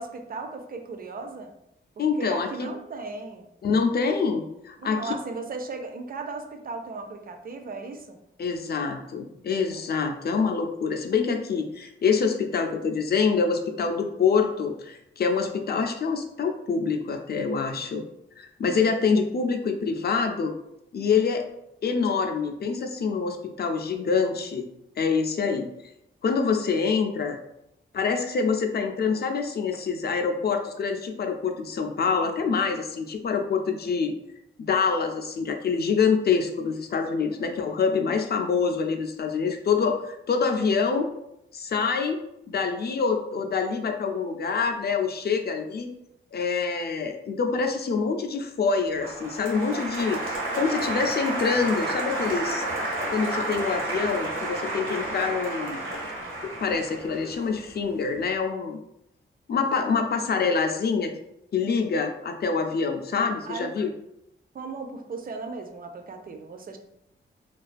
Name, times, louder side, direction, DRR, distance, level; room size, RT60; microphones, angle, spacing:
voice 1, 0.0-1.5 2.0-3.5 4.8-8.2 9.7-9.8 63.5-63.7 64.5-66.8, right 3 dB, 45° right, 5 dB, 0.4 m, -36 dB
voice 2, 2.0-2.7 3.6-5.1 8.4-18.0 18.4-20.5 20.9-21.4 21.8-24.7 25.0-25.7 26.2-27.4 27.9-34.1 34.6-41.1 41.5-42.2 42.5-45.9 46.3-50.2 50.5-52.6 53.1-55.8 56.6-58.8 59.5-61.1 61.5-63.9, left 5 dB, 50° left, 5 dB, 0.4 m, -26 dB
Applause, 49.0-58.0, right 1 dB, 75° right, 0.8 m, -31 dB
2.3 x 2.3 x 2.4 m, 0.82 s
cardioid pair, 60°, 21 cm